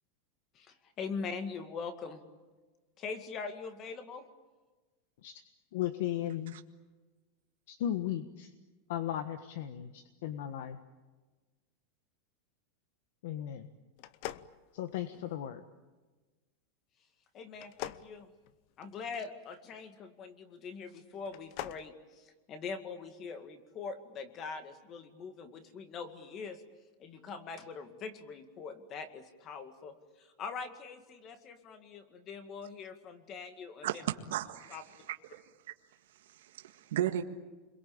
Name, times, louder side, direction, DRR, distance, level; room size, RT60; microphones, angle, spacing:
voice 1, 0.5-2.2 3.0-4.2 17.3-18.3 18.8-26.6 27.0-34.1 34.7-34.8, left 5 dB, 25° left, 9 dB, 2.1 m, -43 dB
voice 2, 5.7-6.5 7.7-8.5 8.9-10.8 13.2-13.7 14.7-15.6, left 11 dB, 60° left, 10 dB, 1.4 m, -36 dB
sound 1, 14.0-15.3 17.5-19.1 21.2-21.9, left 13 dB, 40° left, 0.8 m, -43 dB
voice 3, 34.3-34.8 35.1-35.4 36.4-37.2, right 12 dB, 80° right, 6 dB, 1.7 m, -35 dB
29.5 x 22.5 x 8.8 m, 1.3 s
supercardioid pair, 180°, 0 cm